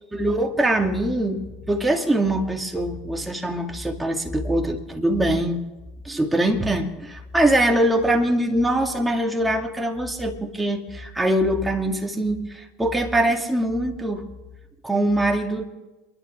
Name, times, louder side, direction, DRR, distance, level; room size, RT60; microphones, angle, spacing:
voice 1, 0.1-5.6 6.0-14.2 14.8-15.6, right 1 dB, 10° right, 2 dB, 2.4 m, -23 dB
29.0 x 12.0 x 3.4 m, 1.1 s
hypercardioid pair, 90°, 0 cm